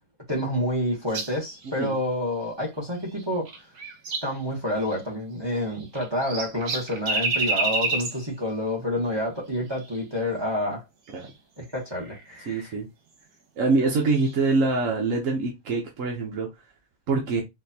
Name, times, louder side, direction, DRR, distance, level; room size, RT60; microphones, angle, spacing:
voice 1, 0.3-3.5 4.2-10.8 11.6-12.7, left 1 dB, 20° right, 1.1 m, -28 dB
sound 1, 1.1-1.7 3.1-4.4 4.8-5.0 5.7-8.3 9.7-10.0 11.1-11.3 11.9-12.3 14.1-14.4, right 3 dB, 80° right, 1.5 m, -30 dB
voice 2, 12.5-12.9 13.6-16.5 17.1-17.4, right 3 dB, 60° right, 1.2 m, -24 dB
4.3 x 2.6 x 2.8 m
omnidirectional pair, 1.7 m